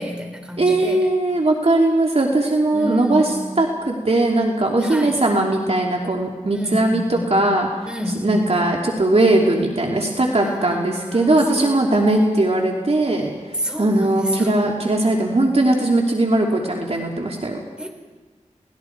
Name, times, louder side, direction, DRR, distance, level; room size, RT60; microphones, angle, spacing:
voice 1, 0.0-1.1 2.7-3.7 4.8-5.2 6.5-7.4 7.9-8.7 10.4-12.8 13.6-14.6 17.8-17.9, left 1 dB, 5° right, 3 dB, 5.0 m, -30 dB
voice 2, 0.6-7.7 8.2-17.6, right 2 dB, 55° right, 0 dB, 3.0 m, -19 dB
30.0 x 19.5 x 4.7 m, 1.3 s
cardioid pair, 45°, 13 cm